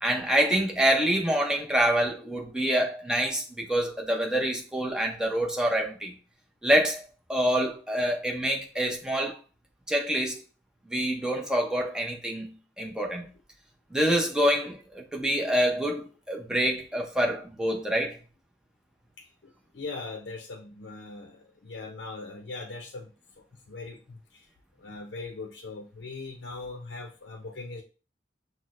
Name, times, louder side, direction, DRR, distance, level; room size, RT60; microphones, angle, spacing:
voice 1, 0.0-6.2 6.6-9.4 9.9-10.4 10.9-13.3 13.9-18.2, right 1 dB, 5° right, 0.6 m, -26 dB
voice 2, 19.2-23.1 23.7-24.5 24.8-27.8, left 3 dB, 75° left, 0.5 m, -40 dB
5.9 x 2.1 x 2.5 m
head